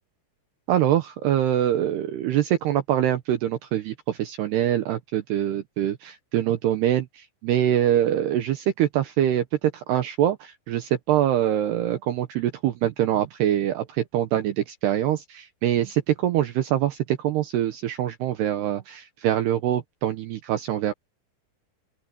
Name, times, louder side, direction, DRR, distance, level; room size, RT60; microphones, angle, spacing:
voice 1, 0.7-20.9, right 11 dB, 75° right, 2.6 m, -24 dB
open air
omnidirectional pair, 5.9 m